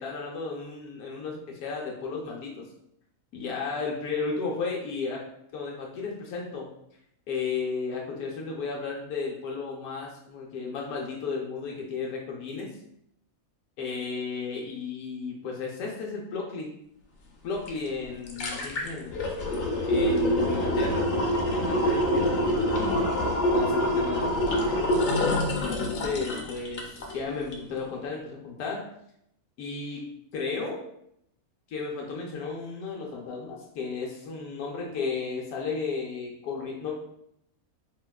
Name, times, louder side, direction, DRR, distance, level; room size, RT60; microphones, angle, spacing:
voice 1, 0.0-2.7 3.3-5.2 5.5-6.7 7.3-12.7 13.8-16.7 17.4-19.5 19.9-21.1 21.6-22.3 23.5-24.4 25.2-28.8 29.6-30.0 30.3-30.8 31.7-36.9, left 4 dB, 85° left, -1 dB, 1.1 m, -34 dB
sound 1, 17.7-17.8 18.1-27.2 27.5-27.6, left 1 dB, 60° left, 0.7 m, -25 dB
4.3 x 2.2 x 2.2 m, 0.75 s
omnidirectional pair, 1.5 m